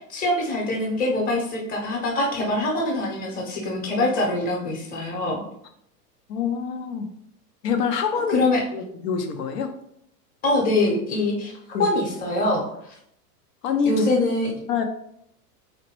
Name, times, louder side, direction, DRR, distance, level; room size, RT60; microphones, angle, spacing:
voice 1, 0.1-5.4 8.3-8.6 10.4-12.9 13.9-14.5, left 2 dB, 20° left, -2 dB, 0.8 m, -24 dB
voice 2, 6.3-7.1 7.6-8.4 8.7-9.7 11.7-11.9 13.6-14.1 14.7-14.8, left 6 dB, 75° left, 5 dB, 0.7 m, -25 dB
4.1 x 2.1 x 2.9 m, 0.72 s
hypercardioid pair, 125°, 49 cm